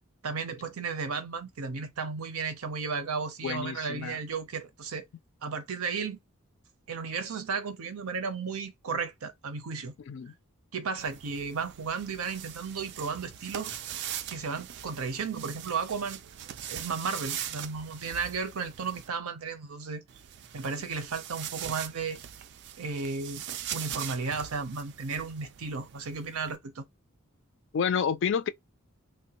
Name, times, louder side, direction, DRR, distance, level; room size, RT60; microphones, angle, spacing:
voice 1, 0.2-5.1 5.4-6.2 6.9-9.9 10.7-13.7 14.3-16.2 16.7-20.0 20.5-22.2 22.8-23.4 23.7-26.9, right 5 dB, 90° right, 0.6 m, -34 dB
voice 2, 3.4-4.2 10.1-10.3 27.7-28.5, left 7 dB, 55° left, 0.3 m, -29 dB
sound 1, 11.0-19.1 20.1-26.6, right 10 dB, 55° right, 0.3 m, -41 dB
3.1 x 2.2 x 2.8 m
head